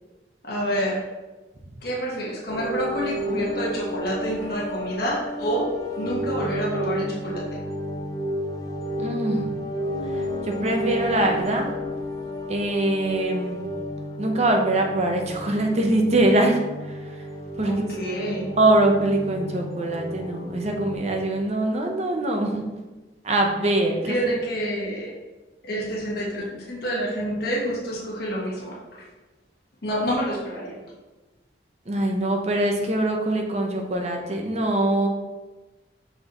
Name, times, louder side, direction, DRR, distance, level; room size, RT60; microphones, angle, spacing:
voice 1, 0.4-1.0 1.8-5.7 6.0-7.4 17.6-18.5 24.1-25.1 25.6-28.8 29.8-30.8, equal, 60° left, -4 dB, 1.4 m, -28 dB
sound 1, 2.5-21.0, equal, 20° left, 0.6 m, -32 dB
voice 2, 9.0-9.4 10.1-11.7 12.5-13.6 14.2-17.0 17.6-17.9 18.2-22.6 23.2-24.4 31.9-35.1, right 1 dB, 40° right, 2 dB, 0.9 m, -23 dB
6.0 x 5.5 x 3.1 m, 1.2 s
head